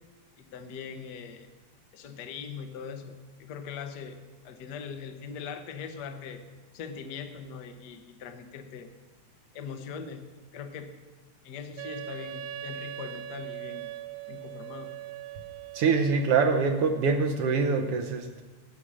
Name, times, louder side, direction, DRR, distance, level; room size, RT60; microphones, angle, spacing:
voice 1, 0.4-1.5 1.9-4.2 4.4-6.4 6.7-8.9 9.5-10.9 11.4-13.9 14.3-14.9, left 6 dB, 65° left, 7 dB, 1.0 m, -41 dB
Wind instrument woodwind instrument, 11.8-16.8, right 12 dB, 85° right, 2.0 m, -41 dB
voice 2, 15.7-18.4, right 5 dB, 65° right, 7 dB, 1.5 m, -24 dB
15.0 x 8.6 x 6.2 m, 1.2 s
omnidirectional pair, 3.3 m